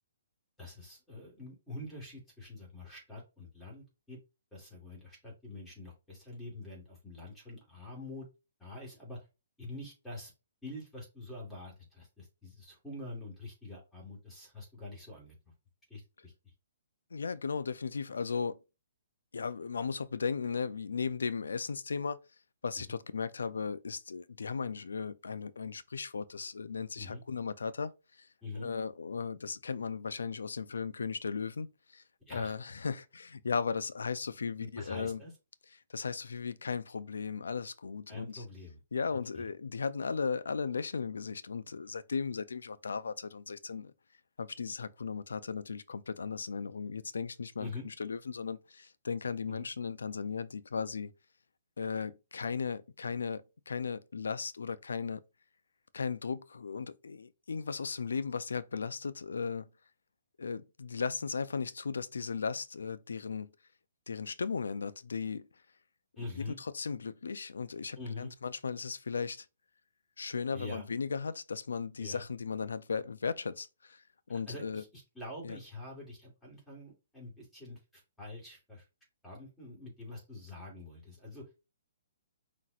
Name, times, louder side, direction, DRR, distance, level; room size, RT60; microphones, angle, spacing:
voice 1, 0.6-4.2 4.5-8.3 8.6-9.2 9.6-10.3 10.6-15.3 15.9-16.3 27.0-27.2 28.4-28.7 32.3-32.5 34.6-35.3 38.1-38.8 39.3-39.5 47.6-47.9 49.5-49.7 66.2-66.6 68.0-68.3 70.5-70.9 72.0-72.2 74.3-78.8 79.2-81.4, left 2 dB, 5° left, 2.5 m, -45 dB
voice 2, 17.1-18.6 19.3-22.2 22.6-27.9 28.6-32.0 32.3-35.2 35.9-38.4 38.9-43.9 44.4-47.7 48.0-51.1 51.8-55.2 55.9-59.7 60.4-63.5 64.1-65.5 66.7-69.4 70.2-74.0 74.3-74.8 75.4-75.6, left 5 dB, 90° left, 0.5 m, -36 dB
5.8 x 3.0 x 2.4 m
hypercardioid pair, 150°, 0 cm